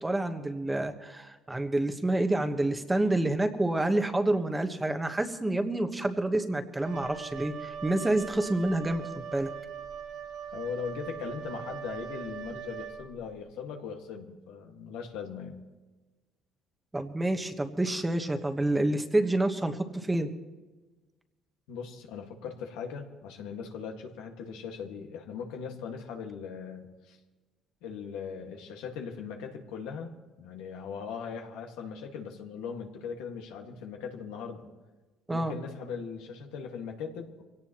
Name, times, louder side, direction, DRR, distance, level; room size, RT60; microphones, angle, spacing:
voice 1, 0.0-9.5 16.9-20.3 35.3-35.5, right 1 dB, 10° right, 6 dB, 1.2 m, -28 dB
Wind instrument woodwind instrument, 6.8-13.4, right 8 dB, 75° right, 2.0 m, -41 dB
voice 2, 10.5-15.7 21.7-27.2 27.8-30.1 30.4-34.7 35.3-37.4, left 6 dB, 90° left, 2 dB, 1.8 m, -39 dB
24.0 x 17.5 x 3.0 m, 1.2 s
cardioid pair, 100°, 0 cm